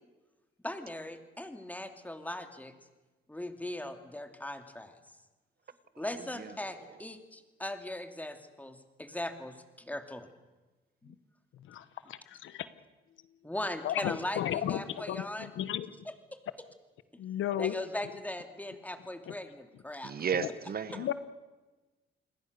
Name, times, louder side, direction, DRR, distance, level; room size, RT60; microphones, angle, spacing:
voice 1, 0.6-2.7 3.3-4.9 6.0-10.3 11.0-11.1 13.4-15.5 16.0-16.4 17.6-20.1, left 1 dB, 10° left, 6 dB, 2.8 m, -39 dB
voice 2, 5.9-7.0 20.0-21.1, right 7 dB, 50° right, 14 dB, 1.3 m, -36 dB
voice 3, 11.7-12.7 13.8-15.9 17.2-17.8 19.3-19.4 20.4-20.5 20.9-21.1, left 11 dB, 80° left, 13 dB, 1.3 m, -34 dB
28.5 x 21.0 x 6.8 m, 1.2 s
cardioid pair, 90°, 20 cm